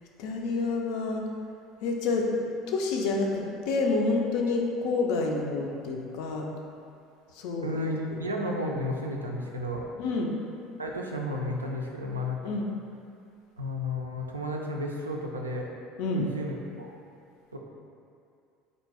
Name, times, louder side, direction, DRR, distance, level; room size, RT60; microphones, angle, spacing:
voice 1, 0.2-1.3 1.8-6.5 7.3-7.9 10.0-10.3 12.4-12.7 16.0-16.3, left 3 dB, 55° left, 1 dB, 0.4 m, -28 dB
voice 2, 7.6-9.8 10.8-12.5 13.6-15.7 16.1-16.9 17.5-17.6, left 1 dB, 80° right, 0 dB, 0.3 m, -32 dB
4.0 x 2.6 x 3.4 m, 2.5 s
figure-of-eight pair, 65°, 0 cm